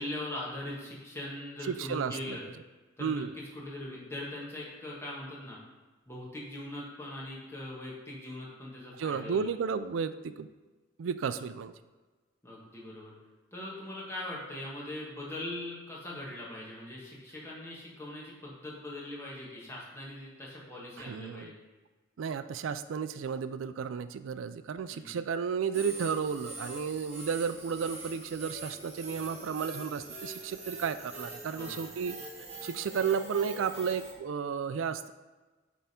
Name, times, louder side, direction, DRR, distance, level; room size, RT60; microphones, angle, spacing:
voice 1, 0.0-2.4 3.0-5.6 6.1-9.5 12.4-13.2 13.5-21.6 24.9-25.2 31.5-31.9, left 1 dB, 15° left, -5 dB, 1.6 m, -41 dB
voice 2, 1.7-2.4 3.0-3.3 9.0-10.5 11.0-11.7 21.0-21.5 22.2-32.2 32.6-35.1, right 6 dB, 85° right, 12 dB, 0.4 m, -33 dB
sound 1, 25.7-34.1, right 2 dB, 35° right, 1.2 m, -44 dB
7.7 x 3.5 x 4.3 m, 1.2 s
head